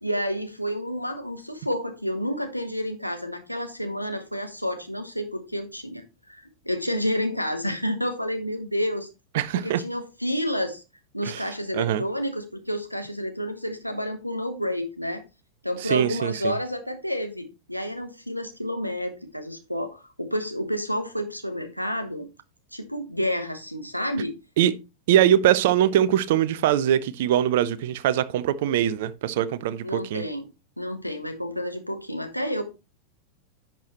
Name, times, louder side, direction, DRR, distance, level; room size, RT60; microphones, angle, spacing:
voice 1, 0.0-9.1 9.5-10.8 11.1-15.2 15.6-22.3 22.7-24.3 29.8-30.5 30.8-32.6, equal, 90° left, 1.2 m, -30 dB
voice 2, 9.3-9.8 11.2-11.4 11.7-12.0 15.8-16.5 24.6-24.7 25.1-30.2, right 11 dB, 55° right, 0.6 m, -22 dB
10.5 x 6.0 x 3.0 m
figure-of-eight pair, 90°, 0 cm